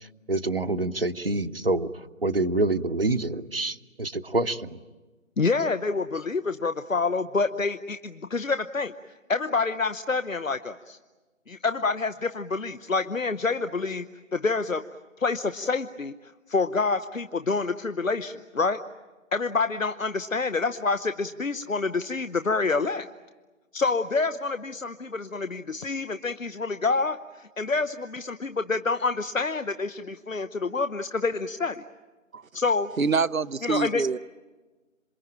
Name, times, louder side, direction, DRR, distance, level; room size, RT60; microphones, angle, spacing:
voice 1, 0.3-1.9 2.2-4.8, right 2 dB, 45° right, 0.9 m, -26 dB
voice 2, 5.4-8.9 9.3-11.0 11.5-14.0 14.3-14.8 15.2-18.8 19.3-23.1 23.7-31.8 32.5-32.9 33.6-34.0, left 4 dB, 75° left, 1.0 m, -27 dB
voice 3, 33.0-34.2, right 5 dB, 85° right, 0.9 m, -25 dB
27.5 x 24.0 x 8.9 m
figure-of-eight pair, 170°, 40 cm